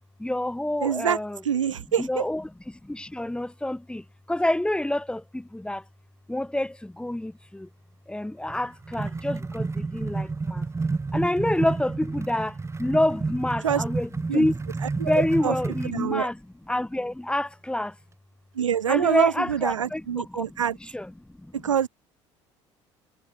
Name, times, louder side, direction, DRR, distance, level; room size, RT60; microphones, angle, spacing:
voice 1, 0.2-1.4 2.0-5.8 6.3-7.7 8.1-10.7 11.1-14.6 14.9-16.4 16.7-17.9 18.9-21.1 21.4-21.5, left 1 dB, 5° left, 3.0 m, -28 dB
voice 2, 0.8-2.3 13.6-13.8 14.3-14.4 15.0-15.5 15.8-16.3 18.6-20.8 21.5-21.9, right 8 dB, 80° right, 0.5 m, -26 dB
sound 1, 8.5-16.0, right 3 dB, 15° right, 1.9 m, -30 dB
figure-of-eight pair, 60°, 16 cm